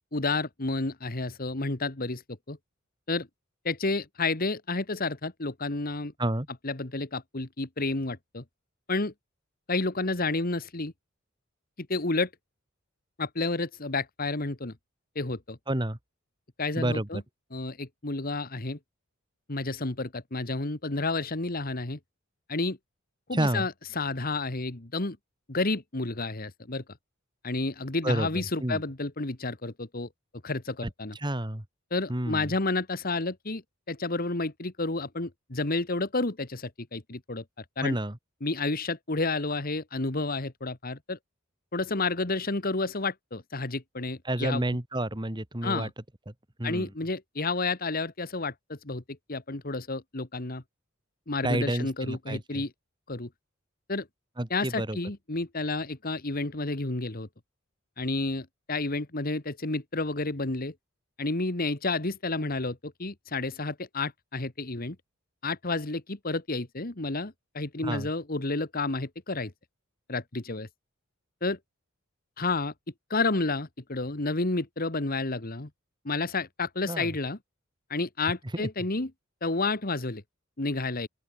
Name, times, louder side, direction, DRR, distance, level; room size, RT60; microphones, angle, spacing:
voice 1, 0.1-2.2 2.5-2.6 3.1-3.3 3.7-6.1 6.6-8.4 8.9-9.1 9.7-10.9 11.8-12.3 13.2-14.7 15.2-15.6 16.6-17.2 17.5-18.8 19.5-22.0 22.5-22.8 23.3-25.2 25.5-26.8 27.4-30.1 30.4-31.2 31.9-33.6 33.9-38.0 38.4-41.2 41.7-44.6 45.6-45.9 46.6-49.0 49.3-50.6 51.3-52.7 53.1-53.3 53.9-54.1 54.5-57.3 58.0-60.7 61.2-65.0 65.4-69.5 70.1-70.7 71.4-71.6 72.4-72.7 73.1-75.7 76.1-77.4 77.9-79.1 79.4-80.2 80.6-81.1, left 3 dB, 45° left, 1.8 m, -30 dB
voice 2, 15.7-16.0 16.8-17.2 23.3-23.7 28.0-28.8 30.8-30.9 31.2-31.6 32.1-32.5 37.8-38.2 44.3-45.9 46.3-46.4 46.6-46.9 51.4-52.6 54.4-55.0 67.8-68.1 76.9-77.1 78.5-78.7, right 1 dB, 20° right, 1.9 m, -30 dB
open air
head